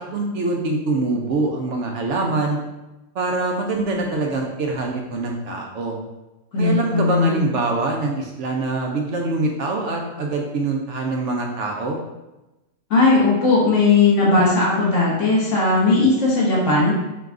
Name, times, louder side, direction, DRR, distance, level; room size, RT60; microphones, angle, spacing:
voice 1, 0.0-2.6 3.1-6.0 6.6-12.0, right 3 dB, 65° right, 0 dB, 0.9 m, -24 dB
voice 2, 6.5-7.4 12.9-16.9, left 3 dB, 60° left, -5 dB, 1.5 m, -17 dB
4.6 x 2.3 x 3.6 m, 1.0 s
omnidirectional pair, 1.5 m